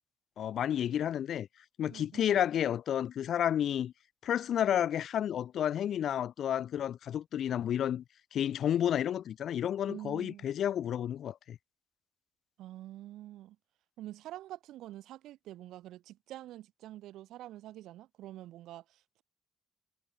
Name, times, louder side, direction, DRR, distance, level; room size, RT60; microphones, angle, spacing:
voice 1, 0.4-1.5 1.8-3.9 4.2-8.0 8.3-11.6, left 10 dB, 75° left, 2.1 m, -31 dB
voice 2, 1.9-2.4 9.9-10.5 12.6-13.6 14.0-19.2, right 14 dB, 90° right, 5.2 m, -47 dB
cardioid pair, 70°, 0 cm